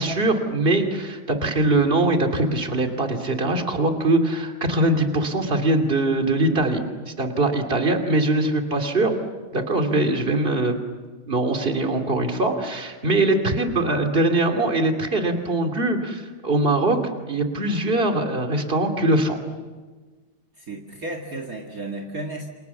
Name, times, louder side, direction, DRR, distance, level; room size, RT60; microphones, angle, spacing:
voice 1, 0.0-9.2 9.5-10.8 11.3-17.0 17.3-19.4, right 2 dB, 25° right, 5 dB, 2.8 m, -22 dB
voice 2, 20.6-22.5, right 2 dB, 45° right, 4 dB, 2.4 m, -33 dB
29.0 x 27.0 x 7.1 m, 1.3 s
omnidirectional pair, 2.3 m